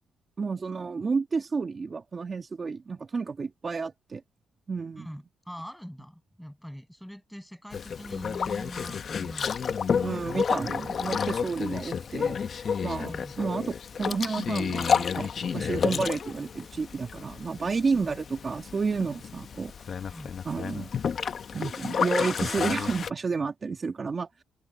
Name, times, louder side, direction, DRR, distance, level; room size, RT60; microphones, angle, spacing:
voice 1, 0.4-4.2 4.7-5.1 10.0-19.7 20.5-20.9 21.5-24.4, right 4 dB, 35° right, 1.8 m, -31 dB
voice 2, 5.0-9.7 13.0-13.3 17.9-18.1 20.1-20.3, equal, ahead, 6.8 m, -43 dB
Boat Water vehicle, 7.7-23.1, left 6 dB, 50° left, 1.0 m, -30 dB
open air
cardioid pair, 90°, 0 cm